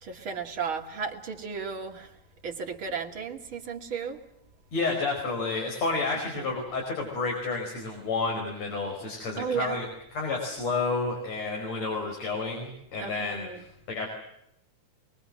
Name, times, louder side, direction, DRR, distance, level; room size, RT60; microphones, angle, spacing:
voice 1, 0.0-2.2 2.4-4.2 6.3-6.5 9.4-9.8 13.0-13.6, right 6 dB, 45° right, 3 dB, 3.0 m, -34 dB
voice 2, 4.7-9.9 10.1-14.1, left 3 dB, 60° left, 1 dB, 6.0 m, -30 dB
24.5 x 23.0 x 7.7 m, 0.79 s
omnidirectional pair, 3.4 m